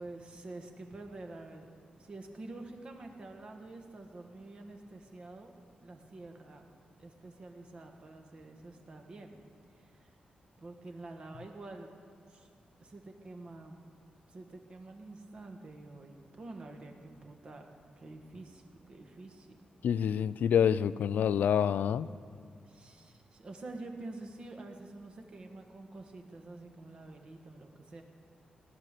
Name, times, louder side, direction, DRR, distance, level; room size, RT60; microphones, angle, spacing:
voice 1, 0.0-1.7 2.0-5.5 5.8-6.6 7.0-9.4 9.8-10.1 10.6-11.9 12.3-12.5 12.8-13.7 14.3-17.7 18.0-19.5 22.6-28.0, right 2 dB, 40° right, 4 dB, 1.4 m, -47 dB
voice 2, 19.8-22.1, left 8 dB, 85° left, 16 dB, 0.4 m, -27 dB
18.5 x 10.5 x 6.7 m, 2.3 s
wide cardioid pair, 175°, 3 cm